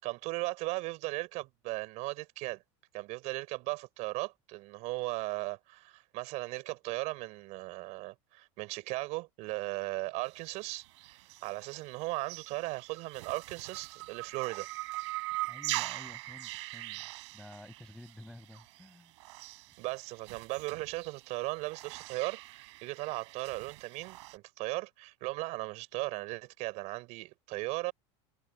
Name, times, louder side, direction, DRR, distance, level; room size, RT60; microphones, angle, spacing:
voice 1, 0.0-2.6 2.9-14.7 19.8-27.9, right 23 dB, 50° right, 6.6 m, -37 dB
sound 1, 10.2-24.4, right 21 dB, 80° right, 4.5 m, -42 dB
voice 2, 15.5-17.1 17.3-19.1, left 1 dB, 5° left, 6.5 m, -51 dB
cardioid pair, 160°, 15 cm